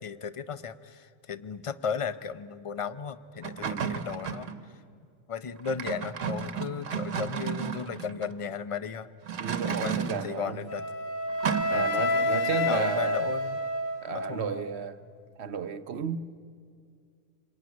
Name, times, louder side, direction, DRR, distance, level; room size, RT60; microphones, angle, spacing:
voice 1, 0.0-4.5 5.3-9.1 9.6-10.8 11.7-13.6 14.1-14.6, left 6 dB, 35° left, 0.6 m, -35 dB
sound 1, 3.4-4.6 5.6-8.3 9.3-10.3 11.4-11.6, right 7 dB, 75° right, 1.4 m, -33 dB
voice 2, 9.4-10.6 11.7-13.3 14.0-15.0 15.4-16.2, right 7 dB, 60° right, 1.0 m, -33 dB
Wind instrument woodwind instrument, 10.7-14.7, left 1 dB, 90° left, 2.3 m, -29 dB
26.5 x 21.0 x 9.4 m
omnidirectional pair, 1.3 m